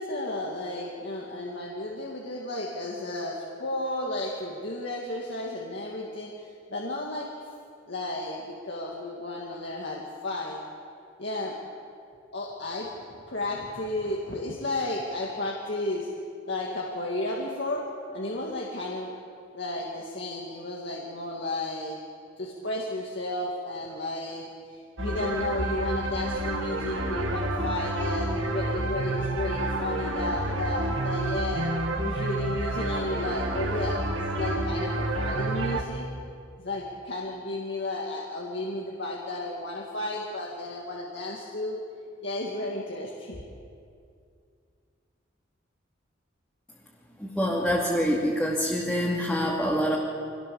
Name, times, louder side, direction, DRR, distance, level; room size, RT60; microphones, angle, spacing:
voice 1, 0.0-6.3 6.7-7.3 7.9-10.6 11.2-11.6 12.3-16.1 16.5-17.8 18.1-19.1 19.5-22.0 22.4-31.7 32.0-36.1 36.6-41.8 42.2-43.4, left 1 dB, 60° left, -3 dB, 2.3 m, -33 dB
sound 1, 25.0-35.8, right 1 dB, 75° right, 2.2 m, -29 dB
voice 2, 47.2-50.0, equal, 5° left, -6 dB, 2.5 m, -26 dB
25.0 x 18.5 x 7.2 m, 2.3 s
head